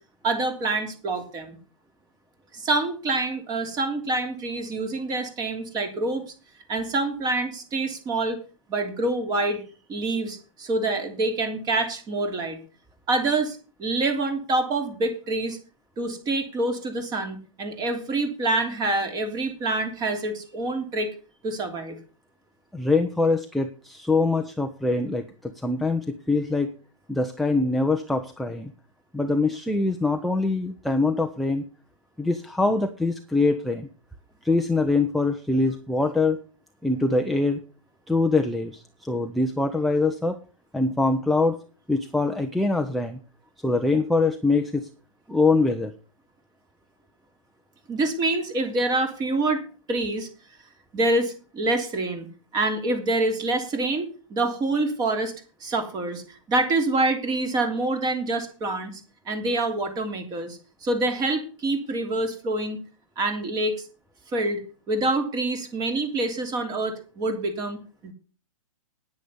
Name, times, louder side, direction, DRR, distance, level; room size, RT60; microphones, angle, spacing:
voice 1, 0.2-1.6 2.5-6.3 6.7-8.4 8.7-9.6 9.9-12.6 13.1-15.6 16.0-21.1 21.4-22.0 47.9-49.6 49.9-50.3 50.9-52.3 52.5-55.3 55.6-59.0 59.3-62.8 63.2-63.8 64.3-64.6 64.9-68.1, right 2 dB, 20° right, 7 dB, 3.1 m, -26 dB
voice 2, 22.7-26.7 27.1-28.7 29.1-31.6 32.2-33.9 34.4-36.4 36.8-37.6 38.1-40.4 40.7-41.6 41.9-43.2 43.6-44.9 45.3-45.9, left 3 dB, ahead, 4 dB, 0.8 m, -23 dB
9.8 x 9.7 x 6.9 m, 0.36 s
hypercardioid pair, 140°, 18 cm